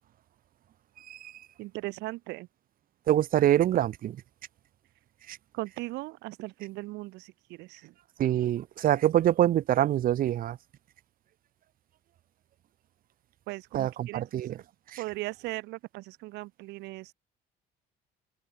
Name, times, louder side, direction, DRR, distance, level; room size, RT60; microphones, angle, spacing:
voice 1, 1.0-1.3 3.1-4.2 5.3-5.4 8.2-10.6 13.7-14.6 14.9-15.0, right 12 dB, 55° right, 1.0 m, -25 dB
voice 2, 1.6-2.5 5.5-7.9 13.5-14.2 14.5-14.6 15.0-17.1, right 20 dB, 90° right, 4.7 m, -38 dB
open air
cardioid pair, 110°, 17 cm